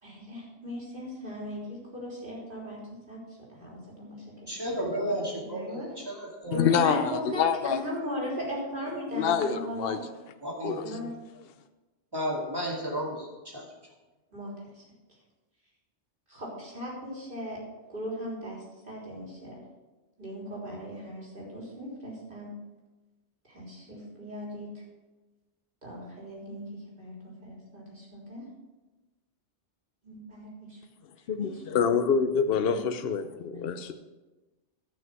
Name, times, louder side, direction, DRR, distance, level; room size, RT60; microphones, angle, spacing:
voice 1, 0.0-2.8 3.1-4.5 4.8-5.9 6.5-10.0 10.8-11.1 14.3-14.8 16.3-17.6 17.9-19.6 20.2-22.6 23.5-24.8 25.8-28.4 30.0-30.8 31.4-31.8 32.6-32.9 33.2-33.9, equal, 45° right, -5 dB, 3.6 m, -38 dB
voice 2, 4.5-7.1 10.4-11.1 12.1-13.7, equal, 20° right, -3 dB, 2.4 m, -33 dB
voice 3, 6.5-7.8 9.1-10.0 10.6-10.8 31.3-33.9, left 7 dB, 60° left, 9 dB, 0.9 m, -26 dB
12.0 x 6.2 x 6.1 m, 1.2 s
omnidirectional pair, 1.2 m